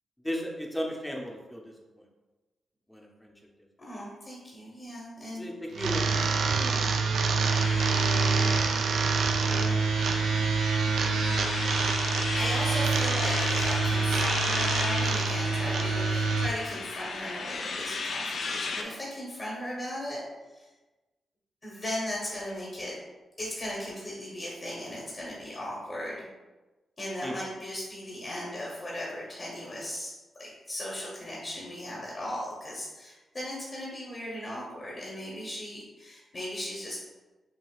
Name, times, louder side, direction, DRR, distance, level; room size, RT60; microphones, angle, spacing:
voice 1, 0.2-2.1 2.9-3.3 5.3-7.2 7.9-9.1 27.2-27.3, equal, 5° left, 0 dB, 0.6 m, -38 dB
voice 2, 3.8-5.4 12.3-20.2 20.5-20.7 21.6-23.0 23.4-26.2 27.0-30.1 30.4-37.0, left 1 dB, 35° left, -5 dB, 1.1 m, -37 dB
sound 1, 5.7-16.5, right 4 dB, 70° right, 0.3 m, -26 dB
sound 2, 7.5-18.8, left 4 dB, 65° left, 0.4 m, -35 dB
6.1 x 2.6 x 2.4 m, 1.2 s
wide cardioid pair, 135°, 0 cm